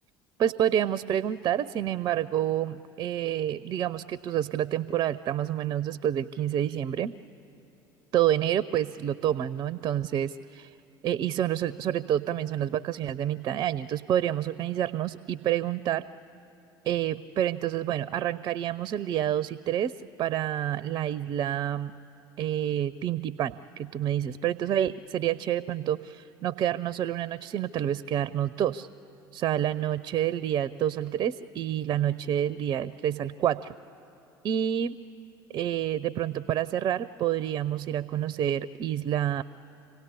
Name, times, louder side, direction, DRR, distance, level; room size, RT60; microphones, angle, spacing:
voice 1, 0.4-7.2 8.1-10.7 11.0-16.1 16.8-19.9 20.2-22.0 22.4-28.9 29.3-33.7 34.4-35.0 35.5-39.4, right 11 dB, 35° right, 18 dB, 0.4 m, -28 dB
26.5 x 17.0 x 8.5 m, 2.9 s
figure-of-eight pair, 65°, 11 cm